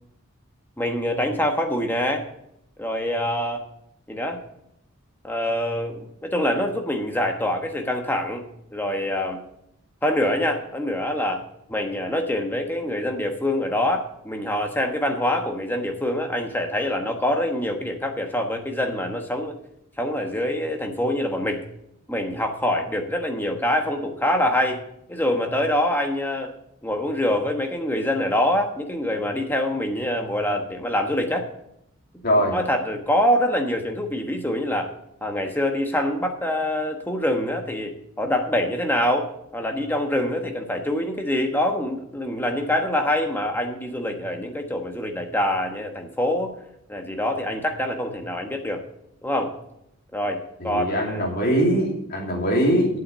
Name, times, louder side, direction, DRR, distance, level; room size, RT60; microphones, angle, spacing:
voice 1, 0.8-2.2 2.8-3.6 4.1-4.4 5.2-8.5 8.7-9.4 10.0-11.4 11.7-19.5 20.0-21.6 22.1-24.8 25.1-26.5 26.8-31.5 32.5-34.9 35.2-46.5 46.9-48.8 49.2-49.5 50.1-51.2, left 1 dB, 10° left, 4 dB, 1.2 m, -25 dB
voice 2, 32.2-32.6 50.6-53.0, equal, 45° left, -1 dB, 2.7 m, -22 dB
8.7 x 7.9 x 6.7 m, 0.77 s
head